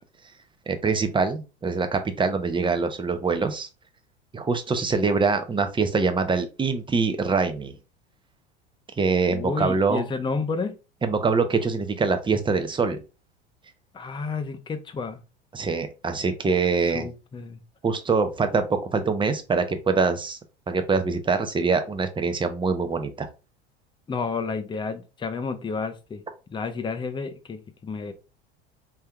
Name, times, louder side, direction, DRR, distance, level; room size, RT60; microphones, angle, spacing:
voice 1, 0.7-3.7 4.3-7.7 9.0-10.1 11.0-13.0 15.5-17.1 17.8-20.4 20.7-23.3, right 4 dB, 15° right, 0.8 m, -24 dB
voice 2, 9.3-10.7 13.9-15.2 16.8-17.6 24.1-26.2 26.5-28.1, left 4 dB, 15° left, 0.7 m, -31 dB
4.3 x 3.4 x 2.3 m
hypercardioid pair, 80°, 31 cm